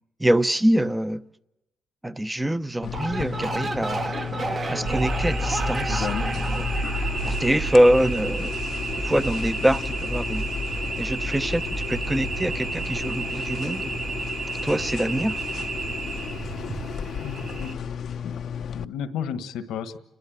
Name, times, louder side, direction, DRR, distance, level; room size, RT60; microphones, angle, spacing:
voice 1, 0.2-1.2 2.0-4.2 4.7-6.7 7.2-8.6 9.0-10.4 11.0-11.6 11.9-13.9 14.6-15.4, right 1 dB, 10° right, 0.7 m, -24 dB
sound 1, 2.8-18.8, left 8 dB, 65° left, 0.7 m, -34 dB
sound 2, 2.8-8.1, right 3 dB, 35° right, 1.1 m, -32 dB
sound 3, 4.8-17.7, right 2 dB, 50° right, 7.1 m, -30 dB
voice 2, 17.2-17.7 18.2-18.3 18.7-20.0, left 8 dB, 85° left, 1.5 m, -33 dB
30.0 x 12.0 x 8.9 m
cardioid pair, 90°, 0 cm